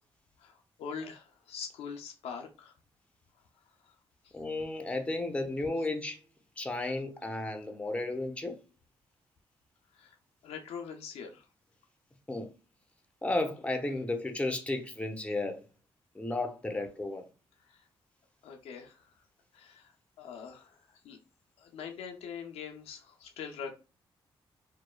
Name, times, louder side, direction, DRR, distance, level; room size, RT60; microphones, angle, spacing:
voice 1, 0.4-2.7 3.8-3.9 4.2-4.3 6.8-7.0 9.9-10.1 10.4-11.5 17.7-17.8 18.4-19.1 19.5-19.9 20.2-21.2 21.6-23.7, left 6 dB, 85° left, 0.5 m, -43 dB
voice 2, 4.3-6.2 6.6-8.6 12.3-12.5 13.2-15.6 16.1-17.2, left 2 dB, 10° left, 0.6 m, -33 dB
3.0 x 2.0 x 2.2 m
cardioid pair, 65°, 10 cm